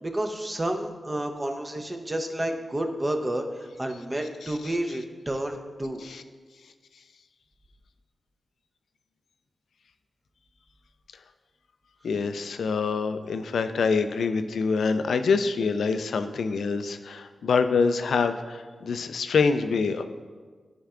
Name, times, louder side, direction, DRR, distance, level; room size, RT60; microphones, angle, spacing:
voice 1, 0.0-6.0, right 1 dB, 30° right, 4 dB, 0.7 m, -30 dB
voice 2, 4.4-4.8 6.0-6.2 12.0-20.0, left 5 dB, 85° left, 9 dB, 0.3 m, -26 dB
10.0 x 4.3 x 2.4 m, 1.5 s
cardioid pair, 45°, 0 cm